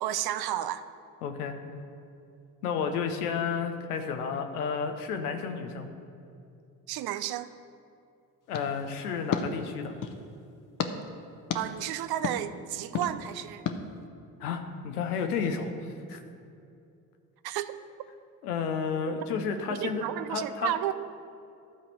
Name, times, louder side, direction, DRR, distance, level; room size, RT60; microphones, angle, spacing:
voice 1, 0.0-0.8 6.9-7.5 11.5-13.6 17.4-17.7 19.1-19.2 19.7-20.9, right 12 dB, 60° right, 13 dB, 0.6 m, -32 dB
voice 2, 1.2-1.6 2.6-5.9 8.5-9.9 14.4-15.7 16.1-16.2 18.4-20.0 20.3-20.7, left 6 dB, 90° left, 6 dB, 0.9 m, -31 dB
sound 1, 8.5-10.2 10.8-10.9 11.5-11.6 12.2-12.4 12.9-13.1 13.7-13.8, left 7 dB, 45° left, 0.9 m, -33 dB
12.5 x 4.2 x 6.7 m, 2.5 s
hypercardioid pair, 55°, 44 cm